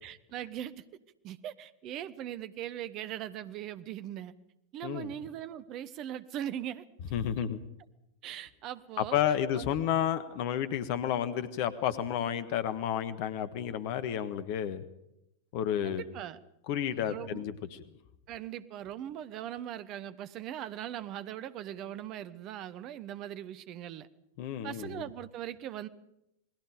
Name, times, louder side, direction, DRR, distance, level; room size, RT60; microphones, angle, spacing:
voice 1, 0.0-0.8 1.2-4.3 4.7-6.8 8.2-9.2 9.5-9.7 15.8-16.4 16.9-17.5 18.3-24.1 24.6-25.9, right 11 dB, 35° right, 14 dB, 1.1 m, -40 dB
voice 2, 7.1-7.6 9.0-14.8 15.5-16.0 16.7-17.8 24.4-25.1, left 10 dB, 45° left, 12 dB, 1.5 m, -31 dB
28.5 x 20.5 x 5.1 m, 0.84 s
figure-of-eight pair, 90°, 0 cm